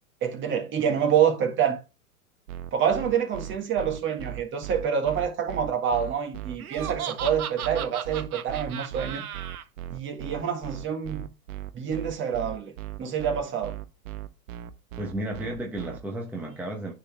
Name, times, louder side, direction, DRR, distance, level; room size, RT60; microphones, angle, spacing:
voice 1, 0.2-1.8 2.7-9.2 9.9-11.2 11.7-12.7 13.0-13.7, right 8 dB, 30° right, 1.7 m, -27 dB
sound 1, 2.5-16.0, right 13 dB, 65° right, 0.9 m, -37 dB
Laughter, 6.6-9.6, right 9 dB, 90° right, 0.9 m, -35 dB
voice 2, 15.0-16.9, right 1 dB, 5° right, 0.9 m, -33 dB
9.6 x 4.2 x 3.4 m
hypercardioid pair, 125°, 42 cm